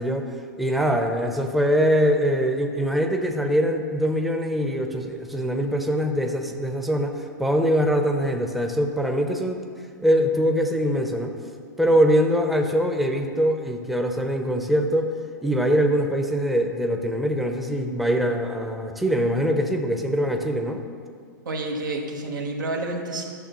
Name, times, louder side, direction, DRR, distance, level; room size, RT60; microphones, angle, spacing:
voice 1, 0.0-11.3 11.8-15.1 15.4-20.8, equal, ahead, 3 dB, 0.6 m, -23 dB
voice 2, 21.4-23.3, right 2 dB, 85° right, 1 dB, 1.2 m, -29 dB
11.5 x 6.5 x 3.0 m, 2.2 s
hypercardioid pair, 105°, 10 cm